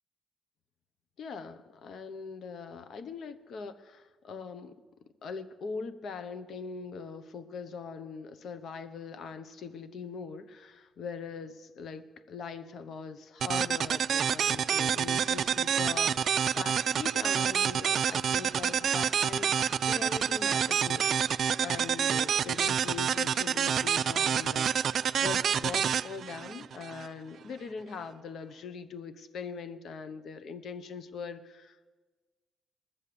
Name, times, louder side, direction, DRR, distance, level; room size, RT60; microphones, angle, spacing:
voice 1, 1.2-4.8 5.2-31.9, left 5 dB, 65° left, 11 dB, 0.9 m, -41 dB
sound 1, 13.4-27.1, right 8 dB, 60° right, 0.3 m, -28 dB
20.5 x 7.3 x 6.9 m, 1.4 s
cardioid pair, 90°, 0 cm